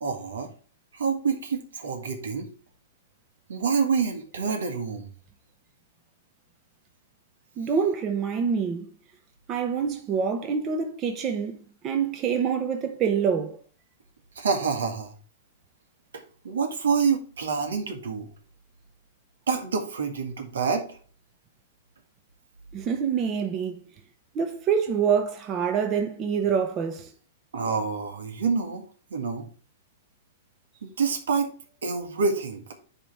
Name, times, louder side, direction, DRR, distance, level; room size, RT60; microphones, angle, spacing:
voice 1, 0.0-0.5 0.9-2.5 3.5-5.1 14.3-15.1 16.1-18.3 19.5-21.0 27.5-28.8 29.1-29.5 30.8-31.5 31.8-32.6, right 5 dB, 85° right, 1.6 m, -27 dB
voice 2, 7.6-8.9 9.5-11.6 11.8-13.6 22.7-23.8 24.3-27.1, right 7 dB, 30° right, 1.1 m, -26 dB
9.9 x 3.3 x 4.3 m
hypercardioid pair, 125°, 0 cm